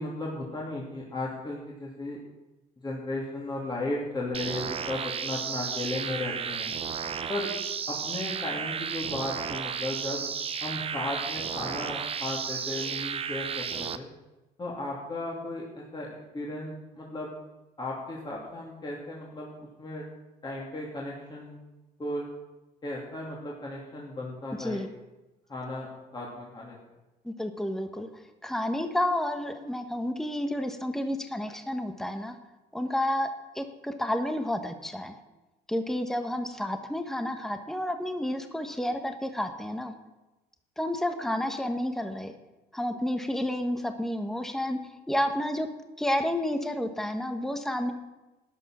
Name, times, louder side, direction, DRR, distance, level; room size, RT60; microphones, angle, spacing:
voice 1, 0.0-2.2 2.8-6.8 7.3-7.5 7.9-10.3 10.6-14.1 14.6-16.1 16.3-17.3 17.8-19.5 19.8-20.0 20.4-21.6 22.0-22.3 22.8-24.8 25.5-25.9 26.1-26.8, left 2 dB, 25° left, -4 dB, 2.8 m, -35 dB
sound 1, 4.3-14.0, right 7 dB, 35° right, 0.7 m, -33 dB
voice 2, 27.2-28.1 28.4-32.3 32.7-33.3 33.5-35.2 35.7-39.9 40.8-42.3 42.7-44.8 45.1-45.7 46.0-47.9, left 1 dB, ahead, 7 dB, 1.1 m, -30 dB
13.0 x 9.9 x 6.2 m, 1.1 s
cardioid pair, 110°, 17 cm